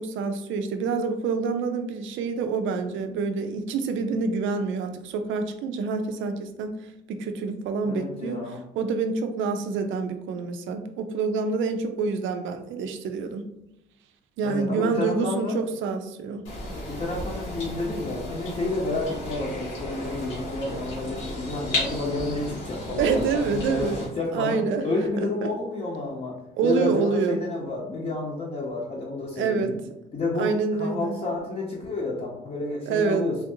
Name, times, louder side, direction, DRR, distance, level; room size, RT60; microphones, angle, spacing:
voice 1, 0.0-6.7 7.1-8.4 8.8-13.5 14.4-16.5 23.0-24.0 24.3-24.8 25.2-25.5 26.6-27.4 29.4-29.7 30.4-31.2 32.9-33.2, right 5 dB, 80° right, 7 dB, 0.4 m, -27 dB
voice 2, 7.8-8.6 14.4-15.6 16.9-24.6 24.8-29.8 30.1-33.4, left 2 dB, 35° left, -6 dB, 0.7 m, -30 dB
sound 1, 16.4-24.0, left 1 dB, 90° left, 1.5 m, -34 dB
3.4 x 2.5 x 2.6 m, 0.83 s
cardioid pair, 90°, 20 cm